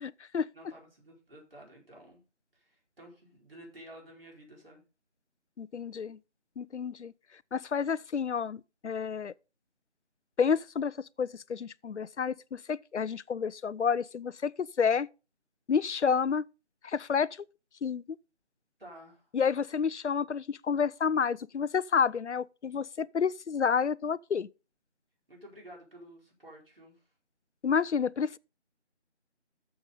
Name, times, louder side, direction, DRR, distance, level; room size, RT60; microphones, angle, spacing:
voice 1, 0.0-0.5 5.6-6.2 6.6-7.1 7.5-9.3 10.4-10.9 11.2-14.5 14.8-15.1 15.7-16.4 16.8-17.3 17.8-18.0 19.3-24.5 27.6-28.4, left 6 dB, 75° left, 0.5 m, -29 dB
voice 2, 0.5-2.2 2.5-4.8 18.8-19.3 25.3-27.1, right 1 dB, 55° right, 4.4 m, -52 dB
11.0 x 7.1 x 3.7 m
figure-of-eight pair, 180°, 35 cm